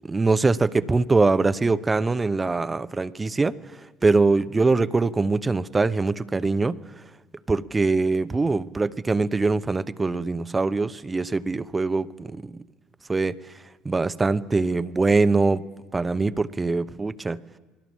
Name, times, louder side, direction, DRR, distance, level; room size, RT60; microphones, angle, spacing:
voice 1, 0.0-3.5 4.0-6.8 7.5-12.6 13.1-13.4 13.8-15.6 15.9-17.4, right 3 dB, 20° right, 0.9 m, -23 dB
28.5 x 21.0 x 7.3 m
figure-of-eight pair, 60°, 0 cm